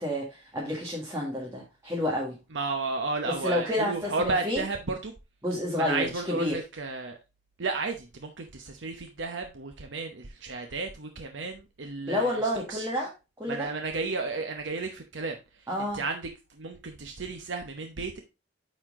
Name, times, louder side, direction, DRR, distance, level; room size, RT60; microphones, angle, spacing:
voice 1, 0.0-2.4 3.2-4.6 5.4-6.6 12.1-13.1 13.4-13.7 15.7-16.0, left 1 dB, 15° right, -4 dB, 1.7 m, -30 dB
voice 2, 2.5-5.1 5.8-7.2 7.6-12.4 12.7-12.8 13.5-15.4 15.9-16.2 16.6-18.2, right 3 dB, 70° right, 5 dB, 0.9 m, -33 dB
9.2 x 4.4 x 3.6 m, 0.26 s
head